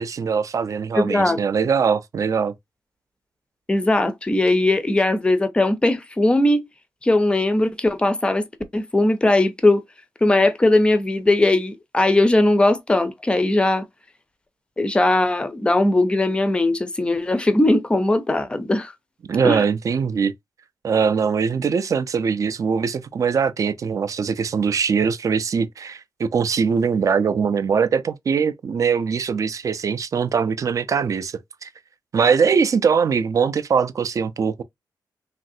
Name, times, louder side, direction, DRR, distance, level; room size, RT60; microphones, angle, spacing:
voice 1, 0.0-2.5 19.3-20.3 20.8-31.7 32.1-34.6, right 6 dB, 45° right, 0.4 m, -21 dB
voice 2, 1.0-1.4 3.7-6.6 7.0-8.4 8.7-9.8 10.2-13.9 14.8-18.9 19.4-19.6, left 2 dB, 15° left, 0.4 m, -19 dB
3.2 x 2.4 x 2.6 m
wide cardioid pair, 130°, 8 cm